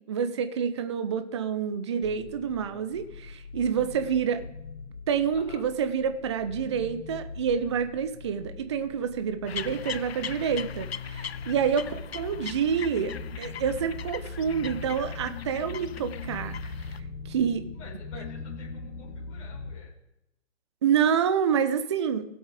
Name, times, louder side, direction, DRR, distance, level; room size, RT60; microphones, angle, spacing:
voice 1, 0.1-4.5 5.1-16.7 17.2-17.6 20.8-22.3, right 7 dB, 25° right, 10 dB, 0.7 m, -28 dB
sound 1, 2.0-19.7, left 4 dB, 80° left, 2.5 m, -40 dB
sound 2, 9.5-17.0, left 8 dB, 55° left, 0.6 m, -40 dB
voice 2, 11.7-12.0 17.7-19.9, left 5 dB, 25° left, -3 dB, 6.3 m, -50 dB
16.5 x 7.9 x 5.0 m, 0.85 s
figure-of-eight pair, 145°, 36 cm